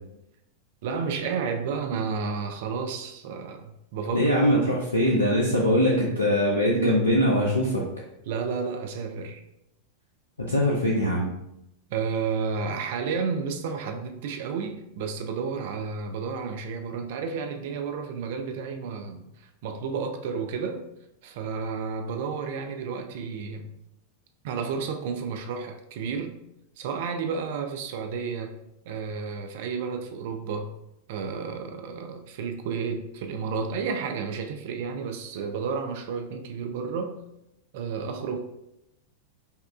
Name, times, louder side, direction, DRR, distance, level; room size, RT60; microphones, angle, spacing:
voice 1, 0.8-4.3 8.3-9.4 11.9-20.9 21.2-23.7 24.4-26.4 26.8-28.6 28.8-30.7 31.1-37.2 37.7-38.4, right 5 dB, 50° right, 0.4 m, -31 dB
voice 2, 4.1-7.8 10.5-11.3, equal, 80° left, 0.5 m, -22 dB
5.3 x 2.3 x 2.4 m
figure-of-eight pair, 90°, 0 cm